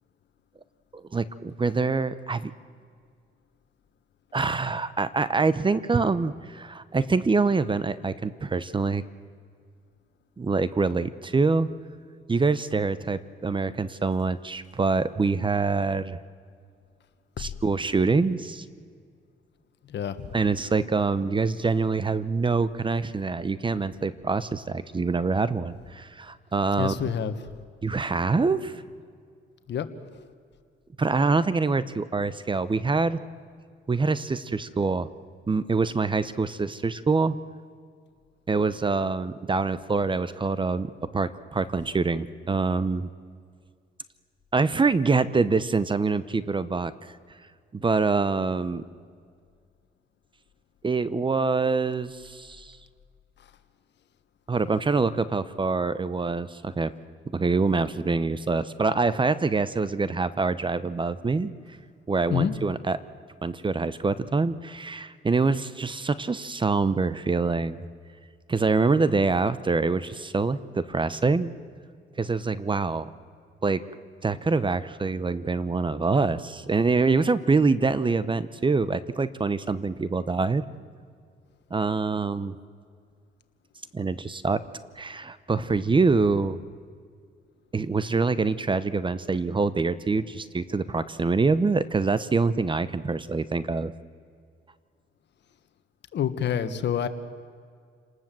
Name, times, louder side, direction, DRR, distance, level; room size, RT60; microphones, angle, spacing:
voice 1, 0.9-2.5 4.3-9.0 10.4-11.7 12.3-16.2 17.4-18.6 20.3-26.9 27.8-28.8 31.0-33.2 33.9-35.1 35.5-37.4 38.5-43.1 44.5-46.9 47.7-48.8 50.8-52.8 54.5-56.9 57.3-61.5 62.1-63.0 63.4-67.8 68.5-71.5 72.2-73.1 73.6-73.8 74.2-80.7 81.7-82.5 83.9-84.6 85.0-86.6 87.7-93.9, right 4 dB, 25° right, 15 dB, 0.9 m, -25 dB
voice 2, 19.9-20.3 26.8-27.3 29.7-29.9 30.1-30.3 62.3-62.5 96.1-97.1, left 8 dB, 65° left, 10 dB, 1.5 m, -27 dB
29.0 x 19.5 x 7.7 m, 2.1 s
cardioid pair, 90°, 20 cm